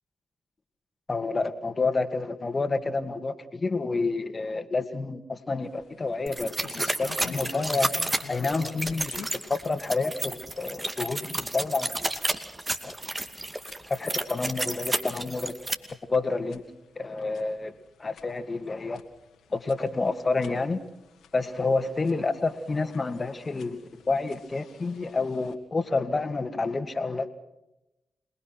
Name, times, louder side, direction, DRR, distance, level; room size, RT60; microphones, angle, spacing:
voice 1, 1.1-7.9 8.3-9.2 9.5-11.9 12.8-13.0 13.9-15.5 16.1-16.6 17.0-17.7 18.0-19.0 19.5-20.8 21.3-23.8 24.1-27.3, left 3 dB, 40° left, 9 dB, 2.2 m, -29 dB
sound 1, 5.6-25.5, left 7 dB, 80° left, 2.4 m, -49 dB
sound 2, 6.3-15.7, right 2 dB, 25° right, 2.5 m, -31 dB
27.5 x 20.0 x 6.0 m, 0.93 s
supercardioid pair, 40°, 0 cm